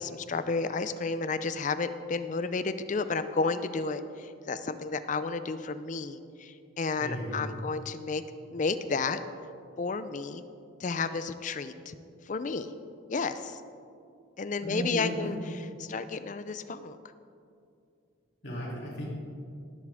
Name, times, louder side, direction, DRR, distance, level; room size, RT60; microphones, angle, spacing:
voice 1, 0.0-8.2 8.5-9.2 9.8-10.4 10.8-11.9 12.2-12.7 13.1-13.6 14.4-15.4 15.8-17.0, left 4 dB, 40° left, 11 dB, 0.4 m, -32 dB
voice 2, 7.0-7.4 14.6-15.3 18.4-19.1, right 1 dB, 55° left, -6 dB, 3.1 m, -35 dB
19.0 x 7.4 x 3.5 m, 2.5 s
head